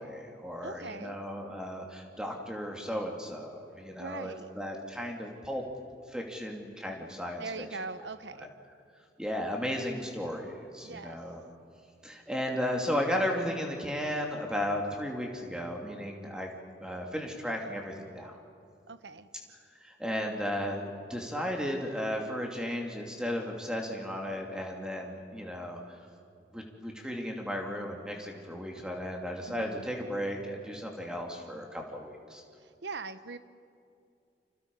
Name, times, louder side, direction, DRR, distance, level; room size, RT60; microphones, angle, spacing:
voice 1, 0.0-5.6 6.1-7.7 8.4-8.5 9.2-11.4 12.0-16.5 16.8-18.4 19.8-25.8 26.5-32.4, equal, 5° right, 1 dB, 2.8 m, -35 dB
voice 2, 0.6-1.2 4.0-4.5 7.4-8.5 10.8-11.2 18.9-19.3 29.5-29.8 32.8-33.4, right 3 dB, 90° right, 12 dB, 1.0 m, -41 dB
29.5 x 27.0 x 5.5 m, 2.5 s
head